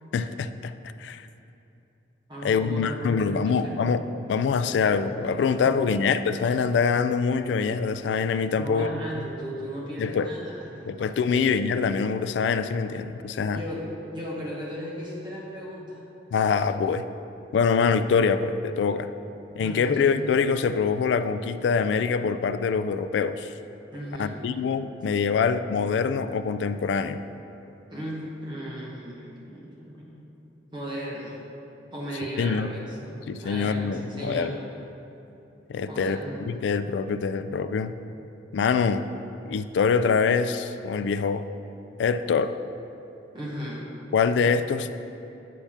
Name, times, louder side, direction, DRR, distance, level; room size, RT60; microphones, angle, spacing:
voice 1, 0.1-0.7 1.0-1.2 2.4-8.9 10.0-10.3 10.9-13.6 16.3-17.0 17.5-19.1 19.6-23.5 24.2-27.2 32.4-32.7 33.3-34.5 35.7-36.2 36.5-38.0 38.5-39.1 39.5-41.5 42.0-42.6 44.1-44.9, left 5 dB, 75° left, 12 dB, 0.3 m, -24 dB
voice 2, 2.3-3.8 4.7-4.8 5.6-6.0 8.5-11.4 13.5-16.0 19.6-20.0 23.9-24.4 27.9-30.3 30.7-31.4 31.9-34.6 35.9-36.4 43.3-43.8, equal, 25° right, -5 dB, 1.0 m, -36 dB
8.5 x 3.4 x 5.7 m, 2.9 s
head